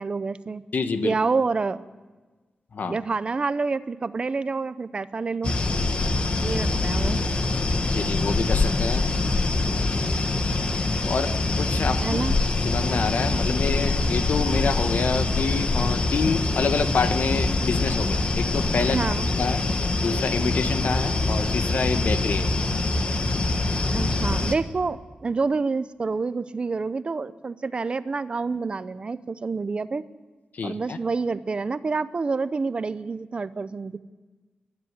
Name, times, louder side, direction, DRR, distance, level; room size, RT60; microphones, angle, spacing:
voice 1, 0.0-0.6 1.0-1.8 2.8-5.6 6.4-7.2 12.0-12.4 18.8-19.3 23.9-30.0 30.6-34.0, right 4 dB, 35° right, 14 dB, 0.6 m, -28 dB
voice 2, 0.7-1.1 2.7-3.0 7.8-9.0 9.9-10.3 11.1-12.2 12.6-22.5 30.5-31.0, left 5 dB, 70° left, 9 dB, 1.3 m, -27 dB
sound 1, 5.4-24.5, left 2 dB, 40° left, 1.4 m, -24 dB
21.0 x 13.0 x 9.7 m, 1.3 s
wide cardioid pair, 180°, 3 cm